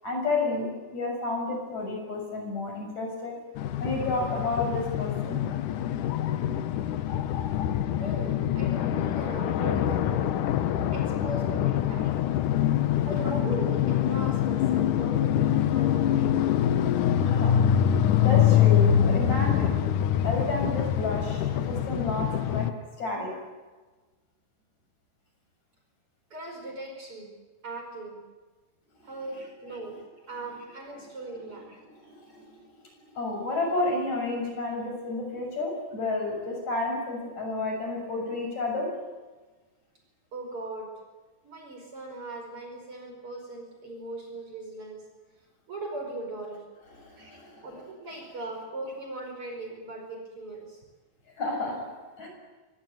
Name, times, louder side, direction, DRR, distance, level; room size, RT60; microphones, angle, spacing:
voice 1, 0.0-3.4 3.8-5.4 12.4-13.1 17.2-17.5 18.2-19.7 20.2-22.7 23.0-23.3 32.0-32.5 33.0-38.9 46.9-47.7 51.4-51.8 52.2-52.3, left 2 dB, 50° left, 1 dB, 8.2 m, -31 dB
sound 1, 3.6-22.7, left 10 dB, 70° left, 2.4 m, -25 dB
voice 2, 7.9-10.4 10.9-12.1 13.0-16.6 26.3-27.3 27.6-28.2 29.0-31.8 40.3-40.9 41.4-45.0 45.7-46.6 47.2-47.4 47.6-50.8, right 2 dB, 35° right, 2 dB, 5.7 m, -39 dB
24.5 x 21.0 x 9.3 m, 1.3 s
omnidirectional pair, 4.3 m